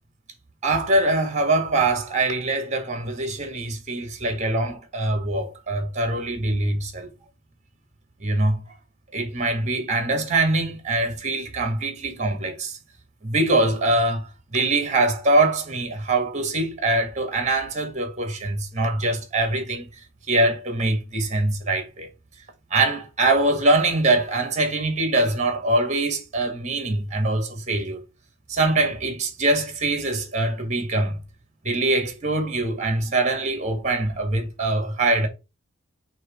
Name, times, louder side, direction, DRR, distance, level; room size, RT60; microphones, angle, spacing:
voice 1, 0.6-7.1 8.2-8.6 9.1-12.8 13.2-19.9 20.3-22.1 22.7-28.0 28.5-31.2 31.6-35.3, right 2 dB, 35° right, 1.9 m, -23 dB
6.1 x 3.1 x 5.2 m
head